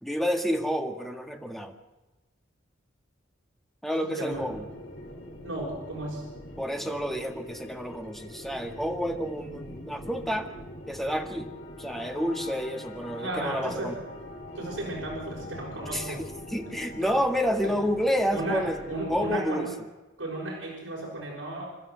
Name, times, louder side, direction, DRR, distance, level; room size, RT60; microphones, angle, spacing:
voice 1, 0.0-1.7 3.8-4.7 6.6-10.5 10.9-11.5 11.8-13.9 15.9-18.8 19.1-19.7, equal, ahead, 5 dB, 1.8 m, -29 dB
voice 2, 4.0-4.4 5.4-6.2 13.2-13.9 14.5-16.2 17.0-17.1 17.6-17.7 18.3-19.7 20.2-21.6, right 1 dB, 70° right, -3 dB, 6.0 m, -34 dB
sound 1, 4.3-19.4, left 1 dB, 65° left, 5.5 m, -43 dB
27.5 x 13.0 x 7.8 m, 1.1 s
head